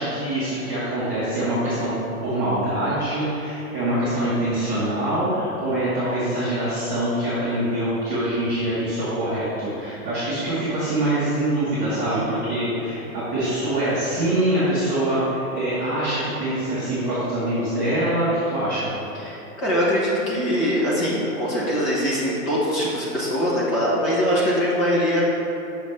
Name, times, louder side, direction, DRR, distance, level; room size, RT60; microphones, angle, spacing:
voice 1, 0.0-2.0 2.2-18.9, right 1 dB, 10° right, -15 dB, 0.6 m, -24 dB
voice 2, 11.9-12.3 19.2-25.3, equal, 20° left, -7 dB, 0.9 m, -23 dB
6.2 x 3.2 x 5.3 m, 2.9 s
hypercardioid pair, 170°, 45 cm